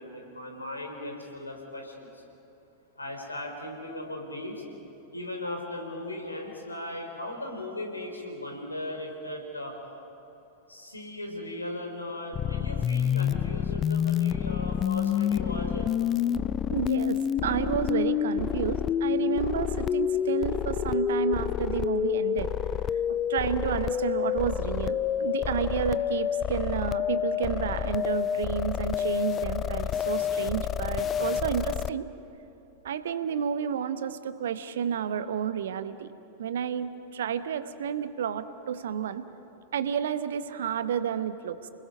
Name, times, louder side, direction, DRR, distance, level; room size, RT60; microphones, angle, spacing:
voice 1, 0.0-2.2 3.0-4.6 5.1-9.7 10.7-15.9, left 1 dB, 80° left, 2 dB, 3.9 m, -37 dB
sound 1, 12.3-31.9, left 9 dB, 25° left, 0.5 m, -28 dB
voice 2, 16.7-22.5 23.1-32.1 32.8-36.1 36.4-39.2 39.7-41.7, right 8 dB, 60° right, 12 dB, 1.0 m, -31 dB
29.5 x 21.0 x 5.5 m, 3.0 s
figure-of-eight pair, 90°, 0 cm